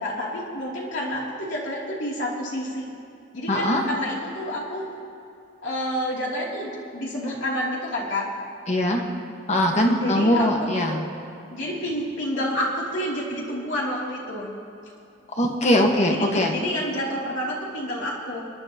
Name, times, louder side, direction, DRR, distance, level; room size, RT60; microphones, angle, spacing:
voice 1, 0.0-2.9 3.3-4.9 5.6-8.3 10.0-11.0 11.5-14.5 16.1-18.4, equal, 70° left, -4 dB, 2.9 m, -29 dB
voice 2, 3.5-3.8 8.7-9.1 9.5-11.0 15.3-16.6, left 1 dB, 35° left, 2 dB, 1.4 m, -21 dB
26.5 x 11.0 x 2.9 m, 2.6 s
head